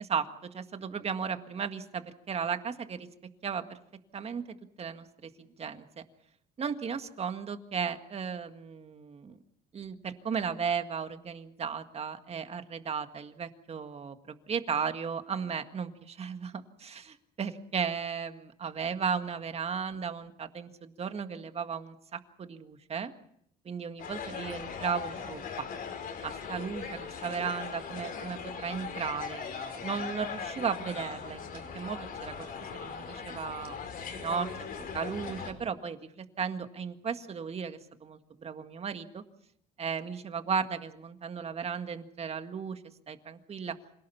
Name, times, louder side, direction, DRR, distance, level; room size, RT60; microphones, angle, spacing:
voice 1, 0.1-3.1 3.4-3.8 4.1-4.4 4.8-6.1 6.6-9.4 9.7-23.1 23.7-25.7 26.2-29.4 29.8-33.8 34.2-34.5 34.9-39.2 39.8-42.8 43.1-43.8, right 6 dB, 35° right, 8 dB, 1.8 m, -35 dB
sound 1, 24.0-35.5, left 6 dB, 60° left, 4.9 m, -39 dB
26.5 x 18.0 x 7.1 m, 0.72 s
cardioid pair, 110°, 17 cm